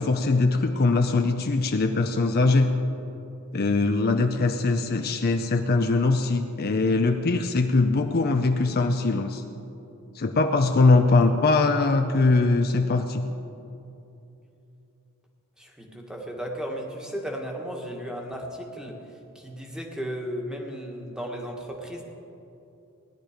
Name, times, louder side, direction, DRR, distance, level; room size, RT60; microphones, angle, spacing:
voice 1, 0.0-2.7 3.5-9.4 10.1-13.2, left 3 dB, 45° left, 6 dB, 0.6 m, -22 dB
voice 2, 15.6-19.0 19.3-22.0, equal, 5° right, 0 dB, 1.6 m, -35 dB
17.5 x 11.0 x 5.1 m, 2.8 s
head